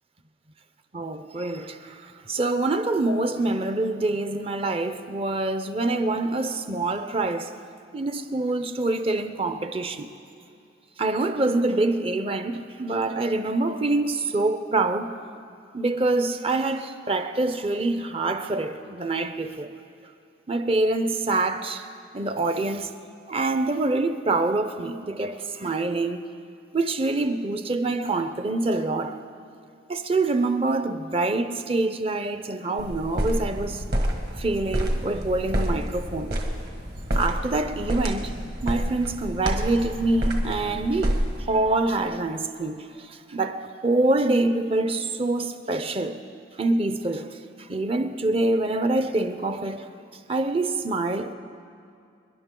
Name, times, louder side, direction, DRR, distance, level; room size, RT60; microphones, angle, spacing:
voice 1, 0.9-2.0 2.3-7.5 7.9-10.1 11.0-15.1 15.7-19.7 20.5-21.9 22.1-22.9 23.3-26.2 26.7-29.2 29.9-33.8 34.4-36.3 37.2-38.3 38.6-41.2 41.5-46.2 46.6-47.4 47.7-49.9 50.3-51.3, right 2 dB, 30° right, 0.6 m, -25 dB
sound 1, 32.8-41.4, equal, 55° right, 1.6 m, -28 dB
28.5 x 11.0 x 3.8 m
head